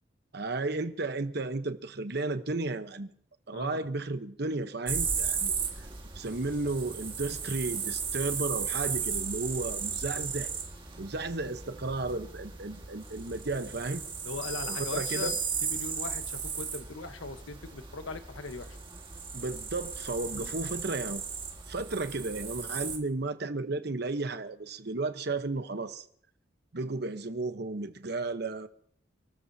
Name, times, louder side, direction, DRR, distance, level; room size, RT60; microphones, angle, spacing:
voice 1, 0.3-3.1 3.5-5.9 6.1-10.5 11.0-14.0 14.7-15.4 19.3-21.2 21.7-26.0 26.7-28.7, right 3 dB, 55° right, 1.0 m, -33 dB
voice 2, 3.5-3.9 14.2-15.3 15.6-18.8 20.3-20.5, left 3 dB, 85° left, 1.2 m, -40 dB
sound 1, 4.9-23.0, right 6 dB, 25° right, 1.8 m, -36 dB
sound 2, 14.4-16.2, left 10 dB, 35° left, 2.2 m, -43 dB
28.5 x 13.5 x 2.8 m
head